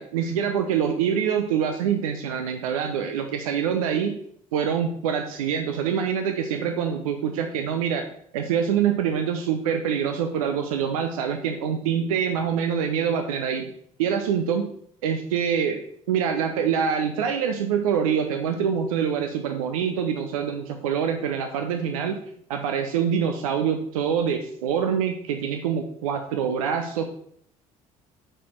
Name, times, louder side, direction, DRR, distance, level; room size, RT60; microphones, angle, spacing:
voice 1, 0.0-4.2 4.5-8.1 8.3-13.7 14.0-14.7 15.0-15.8 16.1-22.2 22.5-27.1, right 7 dB, 80° right, 6 dB, 0.6 m, -25 dB
9.1 x 4.4 x 4.4 m, 0.67 s
hypercardioid pair, 55°, 18 cm